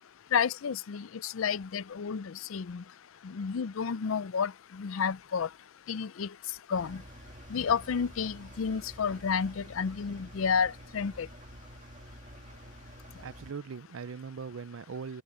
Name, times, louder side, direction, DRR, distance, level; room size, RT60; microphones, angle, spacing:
voice 1, 0.3-2.8 3.2-5.5 5.9-6.3 6.7-7.0 7.5-11.3, left 6 dB, 75° left, 0.5 m, -31 dB
Engine, 6.7-13.5, right 1 dB, 35° right, 2.2 m, -49 dB
voice 2, 13.2-15.2, right 5 dB, 75° right, 0.5 m, -40 dB
head